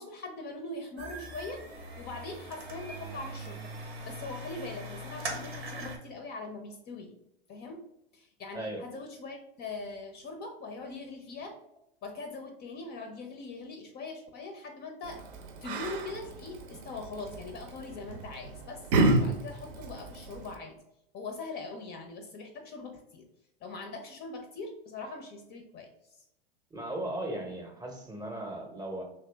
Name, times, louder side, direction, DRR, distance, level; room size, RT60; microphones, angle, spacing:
voice 1, 0.0-1.6 2.0-7.2 7.5-7.8 8.1-11.6 12.0-15.2 15.6-18.9 19.2-20.8 21.1-23.3 23.6-25.9, left 3 dB, 35° left, 5 dB, 0.5 m, -41 dB
sound 1, 1.0-6.0, right 1 dB, 90° right, 0.9 m, -41 dB
Yell, 15.0-20.6, right 2 dB, 60° right, 0.6 m, -31 dB
voice 2, 26.7-29.0, right 1 dB, 15° right, 2 dB, 0.7 m, -37 dB
2.9 x 2.8 x 3.3 m, 0.82 s
hypercardioid pair, 105°, 30 cm